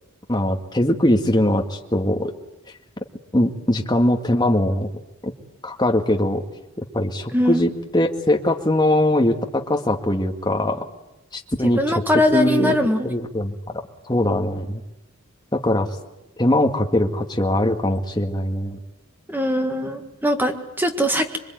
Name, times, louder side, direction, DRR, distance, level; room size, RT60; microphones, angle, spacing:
voice 1, 0.3-2.3 3.3-4.9 5.2-5.3 5.6-6.4 6.8-10.9 11.3-12.8 13.0-13.8 14.1-14.8 15.5-15.9 16.4-18.8, left 1 dB, 20° left, 3 dB, 2.0 m, -21 dB
voice 2, 11.6-13.1 19.3-21.4, left 1 dB, 10° right, 5 dB, 1.8 m, -21 dB
27.0 x 23.5 x 9.4 m, 0.93 s
head